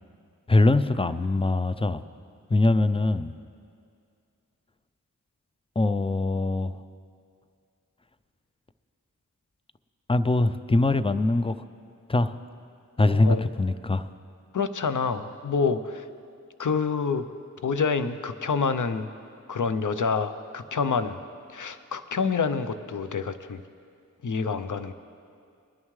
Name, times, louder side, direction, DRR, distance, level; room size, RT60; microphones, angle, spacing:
voice 1, 0.5-2.0 2.5-3.3 5.8-6.8 10.1-11.5 12.1-12.4 13.0-14.1, left 2 dB, 15° left, 12 dB, 0.4 m, -22 dB
voice 2, 13.1-13.5 14.5-16.1 16.6-17.3 17.6-19.1 19.5-21.2 21.5-23.6 24.2-24.9, left 5 dB, 65° left, 11 dB, 0.7 m, -27 dB
20.5 x 11.0 x 3.2 m, 2.3 s
wide cardioid pair, 40°, 33 cm